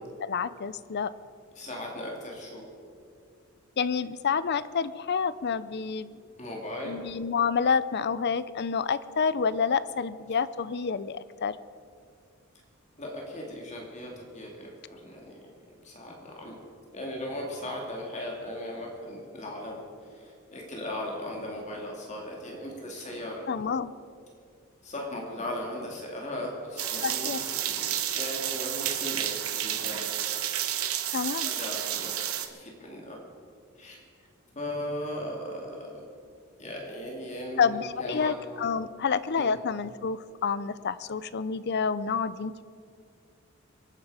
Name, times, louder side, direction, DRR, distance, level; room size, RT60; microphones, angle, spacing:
voice 1, 0.2-1.1 3.8-6.2 6.8-11.6 23.5-23.9 27.0-27.4 31.1-31.5 37.6-42.6, left 6 dB, 50° left, 15 dB, 0.5 m, -28 dB
voice 2, 1.6-2.7 6.4-6.9 13.0-15.4 15.8-16.5 16.9-23.5 24.8-30.1 31.4-33.2 33.8-34.0 34.5-36.1 36.6-38.3 39.3-39.5, left 1 dB, 35° left, -1 dB, 2.5 m, -38 dB
sound 1, 26.8-32.5, right 11 dB, 85° right, 1.1 m, -31 dB
25.0 x 9.6 x 4.9 m, 2.3 s
head